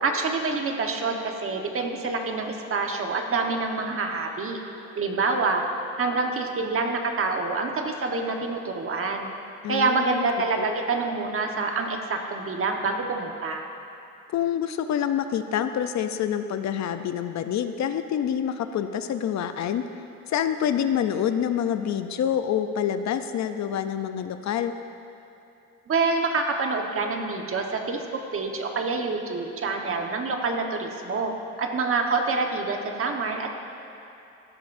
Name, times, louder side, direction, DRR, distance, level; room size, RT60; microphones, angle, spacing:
voice 1, 0.0-4.6 4.9-5.6 6.0-9.3 9.7-13.6 25.9-33.6, right 3 dB, 45° right, 3 dB, 1.3 m, -27 dB
voice 2, 9.6-10.2 10.6-10.7 14.3-19.8 20.3-24.7, left 9 dB, 65° left, 9 dB, 0.6 m, -27 dB
16.0 x 12.0 x 2.6 m, 2.8 s
cardioid pair, 90°, 30 cm